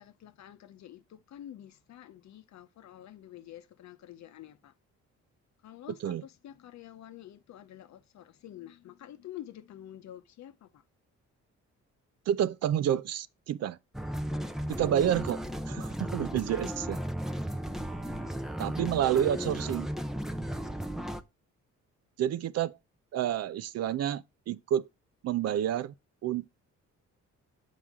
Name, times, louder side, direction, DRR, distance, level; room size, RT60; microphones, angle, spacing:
voice 1, 0.0-4.7 5.6-10.8, left 12 dB, 65° left, 0.8 m, -48 dB
voice 2, 12.3-13.8 14.7-15.4 15.7-17.0 18.6-19.9 22.2-22.8 23.1-24.9 25.2-25.9 26.2-26.5, right 10 dB, 55° right, 0.5 m, -29 dB
sound 1, 13.9-21.2, equal, ahead, 0.6 m, -35 dB
7.3 x 4.8 x 3.5 m
cardioid pair, 90°, 30 cm